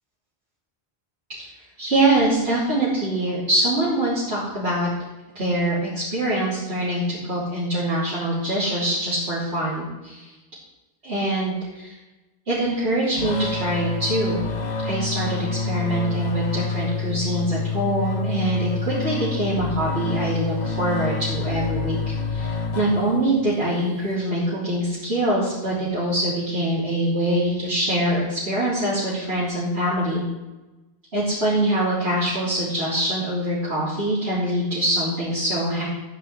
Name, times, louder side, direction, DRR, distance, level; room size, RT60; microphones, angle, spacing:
voice 1, 1.8-4.9 5.4-10.3 11.0-12.0 12.5-14.4 14.8-22.0 22.3-30.2 31.1-35.8, right 1 dB, 75° right, -10 dB, 3.6 m, -24 dB
sound 1, 13.2-23.4, left 4 dB, 45° left, 1.0 m, -28 dB
13.5 x 5.5 x 8.3 m, 1.1 s
omnidirectional pair, 1.1 m